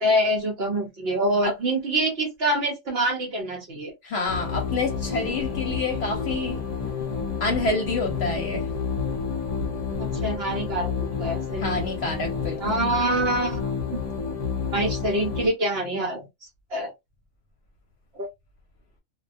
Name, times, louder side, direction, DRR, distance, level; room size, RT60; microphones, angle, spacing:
voice 1, 0.0-3.9 10.0-10.9 11.2-11.8 12.6-13.8 14.7-16.2 16.7-16.9 18.2-18.3, right 1 dB, 60° right, 0.9 m, -25 dB
voice 2, 4.0-6.6 7.4-8.7 11.6-12.9, left 3 dB, 65° left, 0.9 m, -28 dB
sound 1, 4.3-15.5, left 5 dB, 40° left, 0.5 m, -30 dB
2.3 x 2.2 x 2.5 m
omnidirectional pair, 1.3 m